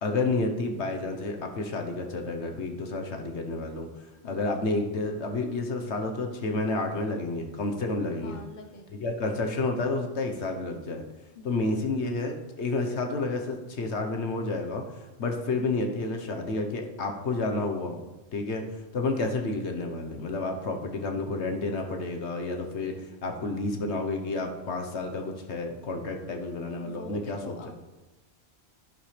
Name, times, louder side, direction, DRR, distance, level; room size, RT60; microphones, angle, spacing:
voice 1, 0.0-8.4 9.0-11.0 11.4-18.0 18.3-27.5, left 2 dB, 80° left, 3 dB, 1.4 m, -30 dB
voice 2, 4.2-4.6 8.2-9.1 11.3-11.7 26.8-27.8, left 4 dB, 45° left, 4 dB, 1.0 m, -45 dB
11.0 x 10.5 x 3.3 m, 1.1 s
omnidirectional pair, 1.1 m